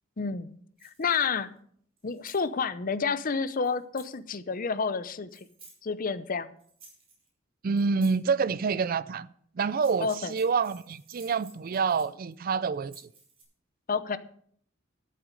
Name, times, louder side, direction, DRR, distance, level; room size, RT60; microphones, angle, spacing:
voice 1, 0.2-0.5 0.8-1.5 2.0-5.4 5.8-6.5 10.0-10.3 13.9-14.2, left 5 dB, 45° left, 0.6 m, -29 dB
sound 1, 0.8-1.4 2.0-2.5 3.6-4.2 5.3-5.8 6.6-7.3 7.8-8.2 9.7-12.3 12.7-13.4, right 4 dB, 30° right, 4.7 m, -54 dB
voice 2, 7.6-9.3 9.6-12.9, right 5 dB, 45° right, 0.4 m, -27 dB
13.0 x 7.7 x 5.1 m
head